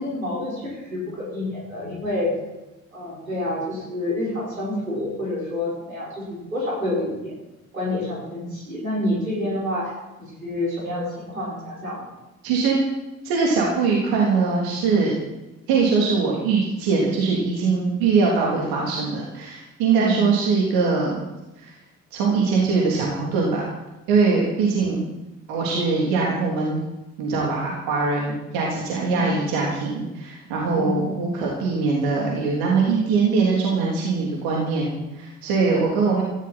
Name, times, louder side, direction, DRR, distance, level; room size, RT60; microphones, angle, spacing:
voice 1, 0.0-2.3 2.9-7.3 7.7-9.9 10.2-12.1 20.0-20.3 24.8-25.1 29.1-29.3 30.7-31.1, left 1 dB, 85° right, -5 dB, 5.0 m, -28 dB
voice 2, 12.4-12.8 13.2-15.1 15.7-21.2 21.6-21.7 22.1-23.7 24.1-25.0 25.5-26.8 27.2-36.2, right 4 dB, 60° right, -3 dB, 3.4 m, -22 dB
17.0 x 15.0 x 4.4 m, 1.0 s
figure-of-eight pair, 50°, 40 cm